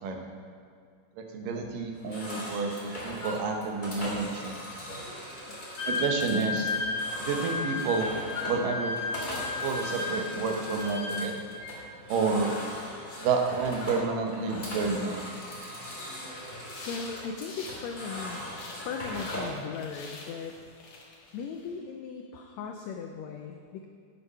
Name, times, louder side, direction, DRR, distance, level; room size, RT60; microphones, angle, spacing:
voice 1, 1.2-4.5 5.9-6.7 7.2-8.1 8.5-8.9 9.6-11.4 12.1-12.5 13.2-15.2, right 4 dB, 85° right, 3 dB, 2.7 m, -29 dB
sound 1, 1.9-19.6, left 1 dB, 15° left, 1.8 m, -39 dB
Wind instrument woodwind instrument, 5.8-11.8, left 3 dB, 55° left, 2.0 m, -34 dB
sound 2, 16.7-18.8 19.1-21.7, left 3 dB, 70° left, 3.0 m, -46 dB
voice 2, 16.9-18.5 18.8-20.6 21.3-23.9, left 6 dB, 90° left, 4 dB, 1.5 m, -38 dB
8.6 x 8.2 x 5.5 m, 2.2 s
omnidirectional pair, 3.8 m